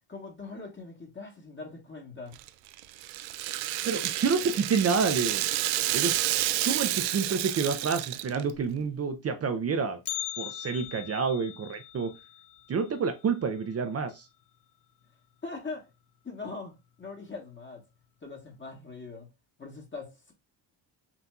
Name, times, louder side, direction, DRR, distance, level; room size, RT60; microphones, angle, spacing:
voice 1, 0.1-2.4 15.4-15.9 16.2-17.8 18.2-19.3 19.6-20.3, left 3 dB, 25° left, 1.3 m, -41 dB
Rattle (instrument), 2.3-8.6, right 15 dB, 85° right, 0.5 m, -30 dB
voice 2, 3.8-5.4 5.9-6.2 6.6-10.0 10.4-12.1 12.7-14.3, right 5 dB, 35° right, 0.5 m, -28 dB
Bell, 10.1-14.1 14.4-14.5 15.0-15.1 15.9-16.0 16.8-17.0 17.4-17.5, left 14 dB, 60° left, 0.6 m, -41 dB
5.9 x 2.7 x 2.3 m
cardioid pair, 105°, 47 cm